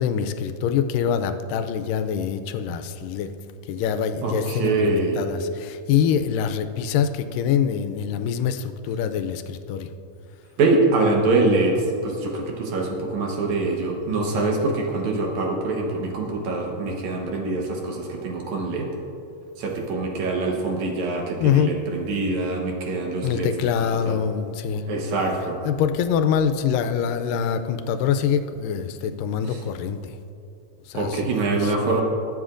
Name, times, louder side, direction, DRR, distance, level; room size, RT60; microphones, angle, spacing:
voice 1, 0.0-3.3 3.7-9.9 21.4-21.7 23.2-24.8 25.6-30.2 30.9-31.3 31.6-31.8, left 8 dB, 85° left, 9 dB, 2.2 m, -24 dB
voice 2, 4.2-5.2 10.6-18.9 19.6-23.7 24.1-24.2 24.9-25.6 29.5-29.6 30.9-32.0, right 3 dB, 65° right, 0 dB, 2.3 m, -24 dB
21.5 x 7.5 x 2.5 m, 2.8 s
omnidirectional pair, 3.8 m